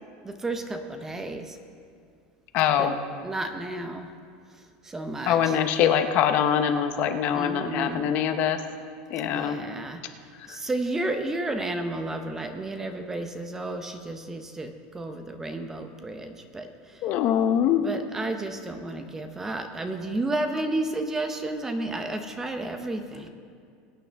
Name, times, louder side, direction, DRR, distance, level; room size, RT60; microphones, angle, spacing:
voice 1, 0.2-1.6 2.8-3.0 3.2-4.1 4.8-5.6 7.3-8.1 9.3-10.0 10.5-17.0 17.8-23.3, right 2 dB, 10° right, 7 dB, 0.7 m, -32 dB
voice 2, 2.5-3.0 5.3-8.6 9.1-9.6 10.5-10.6 17.0-17.8, left 9 dB, 45° left, 7 dB, 0.8 m, -23 dB
22.0 x 9.0 x 3.4 m, 2.3 s
supercardioid pair, 155°, 4 cm